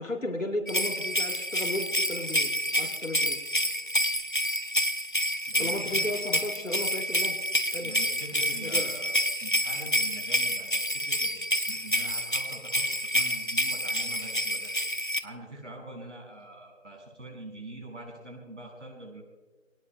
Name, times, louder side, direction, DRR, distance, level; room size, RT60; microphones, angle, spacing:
voice 1, 0.0-3.4 5.6-7.4 7.7-7.9 8.6-8.9, left 1 dB, 75° left, 2 dB, 4.8 m, -34 dB
sound 1, 0.7-15.2, equal, 40° left, 0.6 m, -28 dB
voice 2, 5.5-6.0 7.8-19.2, right 1 dB, 65° right, -1 dB, 5.9 m, -44 dB
28.5 x 18.0 x 2.2 m, 1.3 s
figure-of-eight pair, 175°, 39 cm